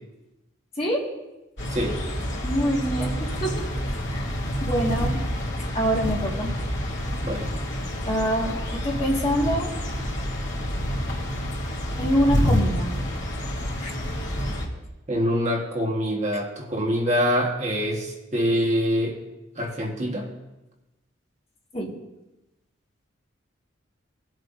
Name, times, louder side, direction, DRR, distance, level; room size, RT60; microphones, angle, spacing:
sound 1, 1.6-14.6, equal, 65° left, 2.5 m, -28 dB
voice 1, 2.4-3.6 4.1-4.3 4.6-5.2 5.7-6.5 8.1-9.7 12.0-12.9 13.8-13.9 21.7-21.9, equal, 30° left, -3 dB, 1.8 m, -25 dB
voice 2, 15.1-19.2 19.6-20.3, equal, 35° right, -1 dB, 1.4 m, -25 dB
19.0 x 7.7 x 2.6 m, 0.99 s
head